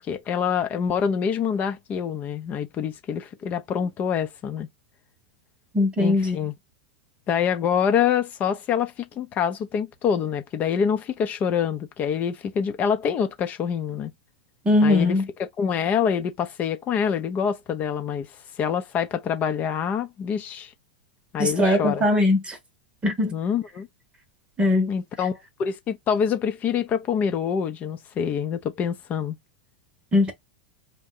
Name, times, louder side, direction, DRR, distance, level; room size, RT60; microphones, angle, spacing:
voice 1, 0.0-4.7 6.0-6.5 7.3-14.1 14.8-18.3 18.6-20.7 21.3-22.1 23.3-23.9 24.9-29.4, left 7 dB, 30° left, 0.7 m, -26 dB
voice 2, 5.7-6.4 14.6-15.3 21.4-22.6 23.0-23.3 24.6-24.9 30.1-30.3, left 2 dB, 20° right, 1.0 m, -20 dB
3.5 x 2.2 x 3.8 m
figure-of-eight pair, 90°, 5 cm